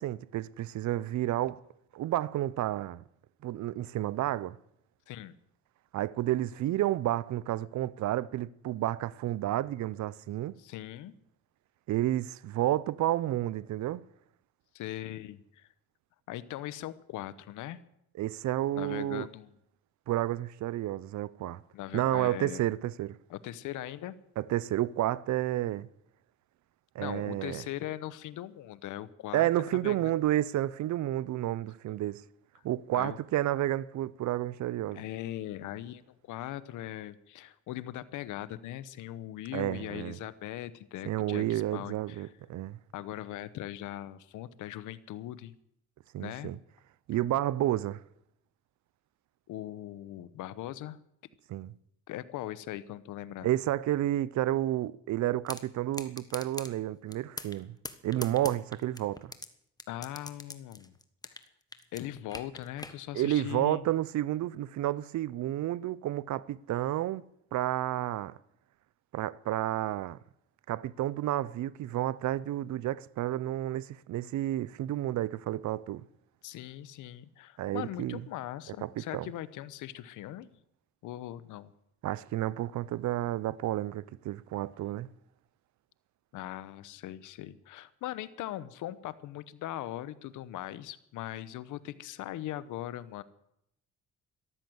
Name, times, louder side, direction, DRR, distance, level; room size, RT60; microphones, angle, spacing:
voice 1, 0.0-1.6 1.9-3.0 3.4-4.6 5.9-10.6 11.9-14.0 18.2-19.3 20.1-21.6 21.9-23.2 24.4-25.9 26.9-27.6 29.3-32.2 32.6-35.0 39.5-40.2 41.0-42.8 46.1-46.6 47.1-48.0 51.5-51.7 53.4-57.8 58.0-59.3 63.1-68.4 69.1-70.2 70.7-76.0 77.6-78.2 78.8-79.3 82.0-85.1, right 14 dB, 70° right, 0.6 m, -31 dB
voice 2, 10.6-11.1 14.7-15.7 16.3-17.8 18.7-19.5 21.7-22.6 23.3-24.2 27.0-30.1 32.9-33.2 34.9-42.3 42.9-45.5 46.2-46.5 49.5-51.0 52.1-53.5 59.9-60.9 61.2-61.3 61.9-63.8 76.4-80.5 81.0-81.7 86.3-93.2, left 13 dB, 90° left, 0.9 m, -40 dB
sound 1, 55.5-55.6 55.9-56.7 57.1-57.6 57.8-59.5 59.8-61.5 61.7-62.9, left 2 dB, 15° left, 1.3 m, -41 dB
13.5 x 12.5 x 7.8 m
cardioid pair, 90°, 30 cm